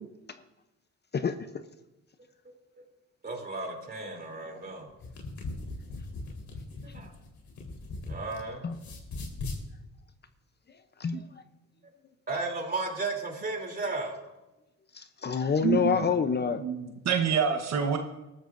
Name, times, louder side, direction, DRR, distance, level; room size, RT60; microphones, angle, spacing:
voice 1, 3.2-4.9 6.8-7.1 8.1-8.7 12.3-14.2, right 3 dB, 30° right, 2 dB, 3.3 m, -34 dB
sound 1, 4.9-8.4 8.7-9.6, left 3 dB, 65° left, 4.0 m, -39 dB
voice 2, 11.0-11.4 14.9-16.6, left 6 dB, 35° left, 10 dB, 0.7 m, -27 dB
voice 3, 15.6-16.0 16.6-18.0, right 7 dB, 60° right, 4 dB, 1.2 m, -27 dB
19.5 x 13.0 x 2.6 m, 1.0 s
cardioid pair, 90°, 30 cm